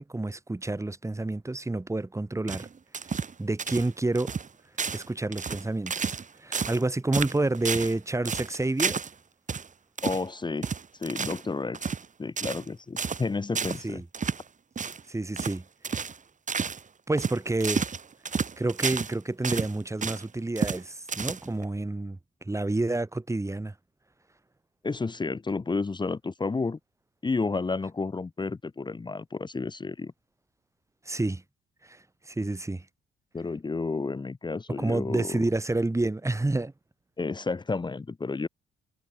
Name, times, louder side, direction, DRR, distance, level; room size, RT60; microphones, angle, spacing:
voice 1, 0.0-2.7 3.4-4.3 4.9-9.0 13.8-14.0 15.1-15.6 17.1-17.9 18.6-23.7 31.1-31.4 31.8-32.9 34.8-36.7, right 2 dB, 15° right, 4.0 m, -29 dB
sound 1, 2.5-3.3 3.6-4.5 4.8-5.1 5.3-6.3 6.5-6.8 7.1-8.0 8.3-9.1 9.5-9.7 10.0-10.3 10.6-11.5 11.7-12.1 12.4-12.7 13.0-13.2 13.6-13.8 14.1-14.4 14.8-15.0 15.4-15.6 15.8-16.2 16.5-16.8 17.2-19.1 19.4-20.2 20.6-20.8 21.1-21.6, right 5 dB, 40° right, 5.6 m, -31 dB
voice 2, 10.0-10.7 11.0-11.9 12.2-14.0 24.8-26.8 27.2-30.1 33.3-35.4 37.2-38.5, left 3 dB, 20° left, 1.2 m, -31 dB
cardioid pair, 90°, 20 cm